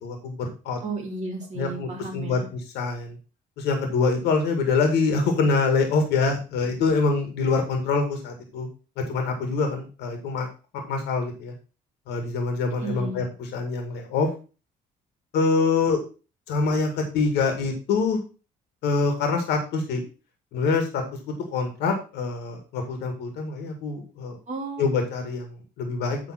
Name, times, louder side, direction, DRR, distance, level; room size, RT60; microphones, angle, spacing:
voice 1, 0.0-0.8 1.6-3.1 3.6-8.7 9.1-10.5 10.7-11.5 12.1-13.2 13.5-14.3 15.3-16.0 16.5-18.2 18.8-20.0 20.5-21.0 21.5-24.4 24.8-26.2, left 4 dB, 80° left, 4 dB, 2.1 m, -25 dB
voice 2, 0.8-2.5 12.8-13.3 24.5-24.9, right 3 dB, 45° right, -2 dB, 3.0 m, -33 dB
9.0 x 3.9 x 6.0 m, 0.34 s
cardioid pair, 110°, 17 cm